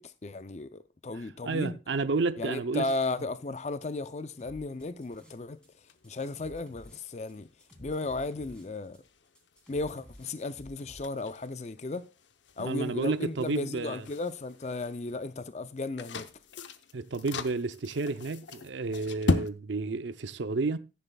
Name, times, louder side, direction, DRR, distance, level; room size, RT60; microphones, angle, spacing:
voice 1, 0.0-1.8 2.4-5.6 6.0-7.5 7.8-9.0 9.7-12.0 12.6-16.3, left 3 dB, 40° left, 0.4 m, -35 dB
voice 2, 1.4-2.9 12.6-14.0 16.9-20.8, right 3 dB, 90° right, 0.6 m, -31 dB
sound 1, 3.1-19.5, left 3 dB, 85° left, 0.8 m, -40 dB
sound 2, 4.4-5.7 5.9-11.0, equal, 5° left, 3.1 m, -52 dB
15.0 x 10.0 x 2.3 m
head